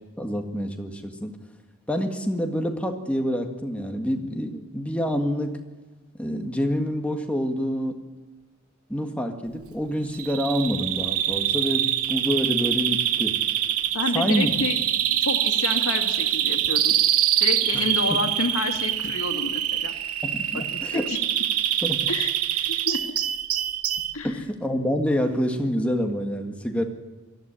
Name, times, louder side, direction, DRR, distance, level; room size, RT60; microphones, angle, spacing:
voice 1, 0.2-1.3 1.9-5.6 6.1-8.0 8.9-13.4 14.1-14.5 17.7-18.2 20.2-21.1 21.8-22.1 24.2-26.8, equal, 5° left, 4 dB, 1.8 m, -27 dB
Bird vocalization bird call bird song, 10.1-24.1, right 11 dB, 90° right, 1.0 m, -25 dB
voice 2, 13.9-14.8 15.2-16.9 17.4-19.9 20.5-20.6 20.9-21.2 22.1-23.0 24.1-24.4, left 3 dB, 85° left, 5 dB, 2.2 m, -29 dB
18.0 x 14.5 x 9.9 m, 1.3 s
head